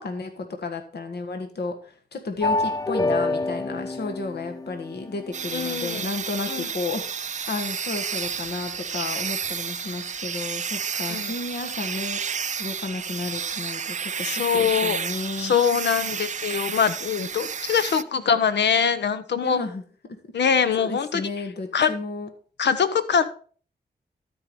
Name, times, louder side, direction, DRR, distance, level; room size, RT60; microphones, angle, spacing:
voice 1, 0.0-15.6 19.4-20.2 20.8-22.3, left 3 dB, 70° left, 5 dB, 1.4 m, -33 dB
sound 1, 2.4-5.4, left 2 dB, 20° left, 0.5 m, -27 dB
sound 2, 5.3-18.0, right 7 dB, 45° right, 0.4 m, -31 dB
voice 2, 5.5-6.1 6.5-6.7 11.1-11.3 14.2-15.0 15.4-19.6 20.3-21.2 21.7-21.9 22.6-23.2, left 7 dB, 85° left, 12 dB, 0.9 m, -23 dB
13.0 x 4.7 x 5.2 m, 0.42 s
cardioid pair, 65°, 18 cm